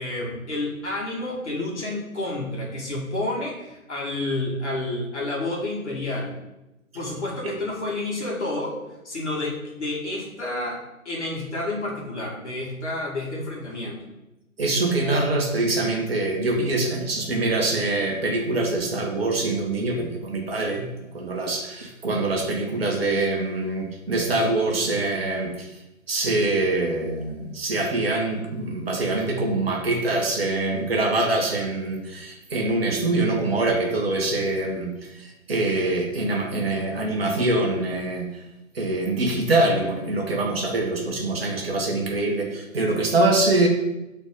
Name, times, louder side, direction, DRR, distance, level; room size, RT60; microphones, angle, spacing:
voice 1, 0.0-6.3 6.9-8.8 9.1-10.8 11.1-14.0, left 2 dB, 55° left, -2 dB, 2.1 m, -30 dB
voice 2, 14.6-20.9 21.1-25.7 26.1-38.4 38.7-43.7, right 2 dB, 45° right, 1 dB, 1.4 m, -24 dB
7.9 x 4.1 x 3.8 m, 0.96 s
figure-of-eight pair, 140°, 41 cm